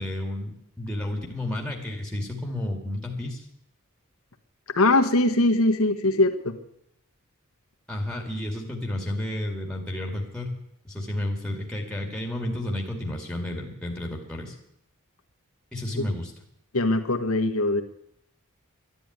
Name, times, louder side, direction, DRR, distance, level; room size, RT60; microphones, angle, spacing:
voice 1, 0.0-3.5 7.9-10.6 10.8-14.6 15.7-16.3, left 1 dB, 5° left, 1 dB, 2.4 m, -31 dB
voice 2, 4.7-6.6 16.0-16.1 16.7-17.8, left 2 dB, 70° left, 6 dB, 1.5 m, -21 dB
12.0 x 11.0 x 9.5 m, 0.76 s
head